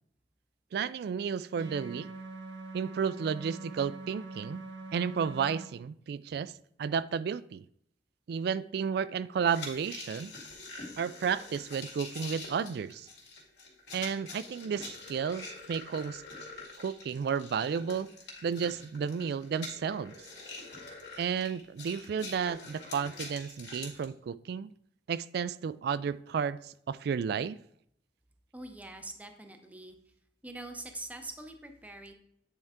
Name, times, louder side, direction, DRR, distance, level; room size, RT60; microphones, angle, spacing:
voice 1, 0.7-2.1 2.7-4.6 4.9-6.5 6.8-7.6 8.3-10.3 11.0-13.1 13.9-16.2 16.8-18.1 18.4-20.1 21.2-24.7 25.1-27.6, right 6 dB, 65° right, 17 dB, 0.3 m, -32 dB
sound 1, 1.6-5.7, right 3 dB, 85° right, 0.7 m, -43 dB
sound 2, 9.5-24.0, left 3 dB, 70° left, 2.1 m, -45 dB
voice 2, 28.5-30.0 30.4-32.1, right 2 dB, 10° right, 5 dB, 0.6 m, -44 dB
8.9 x 4.5 x 3.6 m, 0.70 s
head